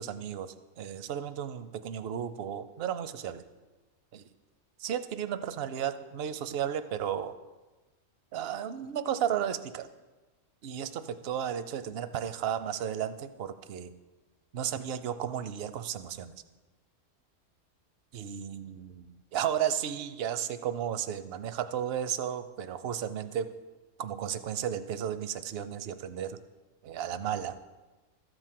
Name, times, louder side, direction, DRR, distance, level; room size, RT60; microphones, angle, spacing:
voice 1, 0.0-3.4 4.1-4.3 4.8-7.4 8.3-9.9 10.6-13.9 14.5-16.3 18.1-23.5 24.0-26.4 26.8-27.6, right 9 dB, 60° right, 12 dB, 0.7 m, -34 dB
13.0 x 5.0 x 7.5 m, 1.2 s
omnidirectional pair, 1.5 m